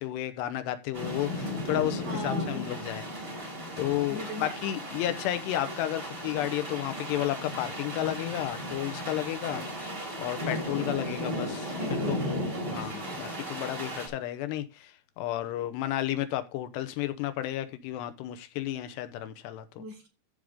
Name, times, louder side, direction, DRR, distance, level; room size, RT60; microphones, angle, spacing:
voice 1, 0.0-3.0 3.8-9.6 10.2-11.7 12.1-12.2 12.7-19.8, left 13 dB, 90° left, 3.1 m, -32 dB
sound 1, 0.9-14.1, left 1 dB, 25° right, 4.0 m, -35 dB
voice 2, 2.0-2.7 4.1-4.6 11.8-13.3 19.8-20.1, right 1 dB, 40° right, 4.0 m, -40 dB
14.5 x 5.0 x 3.6 m
omnidirectional pair, 4.8 m